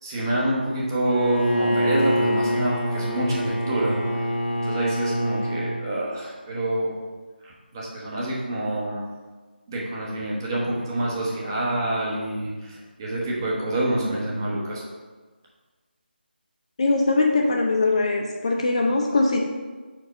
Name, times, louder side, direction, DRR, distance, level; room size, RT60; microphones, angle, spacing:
voice 1, 0.0-4.2 4.5-6.9 7.4-9.0 9.7-14.8, right 1 dB, 20° right, -5 dB, 1.1 m, -27 dB
Bowed string instrument, 1.1-5.9, equal, 75° left, 1.5 m, -25 dB
voice 2, 16.8-19.4, left 3 dB, 35° left, 1 dB, 0.6 m, -21 dB
4.6 x 4.1 x 5.0 m, 1.4 s
figure-of-eight pair, 165°, 6 cm